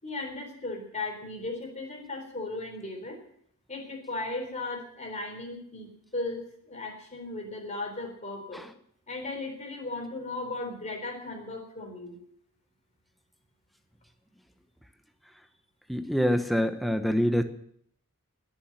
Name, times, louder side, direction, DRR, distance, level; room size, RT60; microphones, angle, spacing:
voice 1, 0.0-3.2 3.7-8.6 9.1-12.2, left 2 dB, 30° left, 3 dB, 3.9 m, -36 dB
voice 2, 15.9-17.4, equal, ahead, 7 dB, 0.9 m, -25 dB
20.0 x 7.3 x 7.6 m, 0.67 s
head